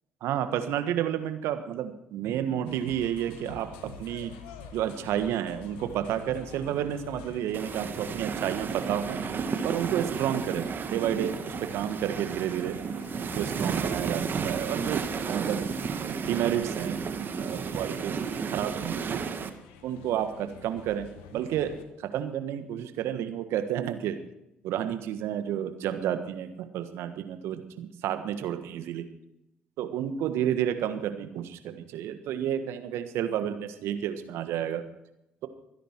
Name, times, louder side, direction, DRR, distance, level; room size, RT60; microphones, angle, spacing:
voice 1, 0.2-4.3 4.7-9.2 9.6-12.7 13.2-15.7 16.0-17.0 17.4-19.2 19.8-24.2 24.6-29.0 29.8-34.8, right 10 dB, 70° right, 9 dB, 1.4 m, -31 dB
sound 1, 2.7-21.8, left 8 dB, 80° left, 1.4 m, -49 dB
sound 2, 7.5-19.5, right 6 dB, 45° right, 1.5 m, -32 dB
23.0 x 10.0 x 4.6 m, 0.86 s
hypercardioid pair, 55°, 5 cm